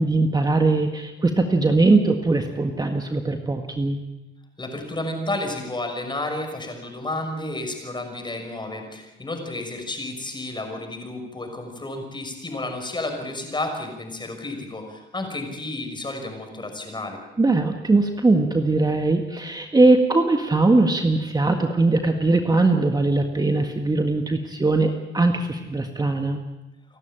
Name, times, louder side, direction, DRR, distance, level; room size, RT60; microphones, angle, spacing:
voice 1, 0.0-4.0 17.4-26.4, right 2 dB, 20° right, 4 dB, 1.7 m, -20 dB
voice 2, 4.6-17.2, left 2 dB, 25° left, 4 dB, 5.9 m, -31 dB
28.5 x 12.0 x 9.1 m, 1.0 s
cardioid pair, 90°, 20 cm